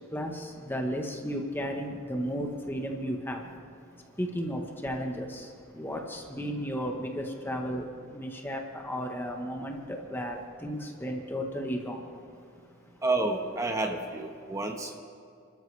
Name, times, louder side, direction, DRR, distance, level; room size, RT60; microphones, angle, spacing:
voice 1, 0.1-3.4 4.2-5.5 5.8-7.9 8.1-12.0, equal, 10° left, 2 dB, 1.2 m, -34 dB
voice 2, 13.0-15.0, right 2 dB, 15° right, 3 dB, 1.2 m, -30 dB
29.5 x 13.0 x 3.4 m, 2.4 s
head